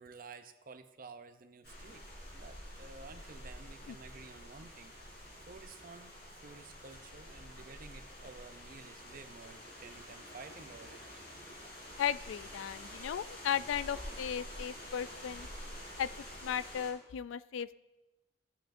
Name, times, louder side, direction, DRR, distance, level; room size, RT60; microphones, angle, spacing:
voice 1, 0.0-11.0 12.6-12.7 13.4-13.6, right 4 dB, 45° right, 9 dB, 0.6 m, -52 dB
sound 1, 1.6-16.9, equal, 55° left, 3.5 m, -48 dB
voice 2, 12.0-15.5 16.0-16.1 16.4-17.8, left 9 dB, 75° left, 15 dB, 0.3 m, -36 dB
15.5 x 9.0 x 2.6 m, 1.1 s
head